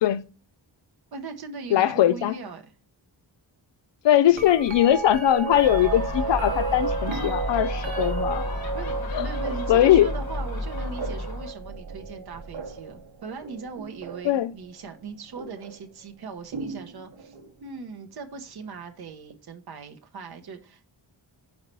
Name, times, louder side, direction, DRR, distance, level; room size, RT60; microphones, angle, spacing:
voice 1, 1.1-2.7 8.7-17.4 17.6-20.9, right 5 dB, 55° right, 0.9 m, -39 dB
voice 2, 1.7-2.4 4.0-8.5 9.1-9.3 9.7-10.1 14.2-14.5, left 12 dB, 70° left, 0.5 m, -20 dB
sound 1, 4.3-14.4 15.4-15.8 16.5-17.5 19.3-19.4, right 5 dB, 90° right, 0.9 m, -33 dB
Gull seagull, 5.6-11.5, left 1 dB, 55° left, 1.1 m, -32 dB
4.7 x 4.3 x 5.2 m
wide cardioid pair, 155°, 45 cm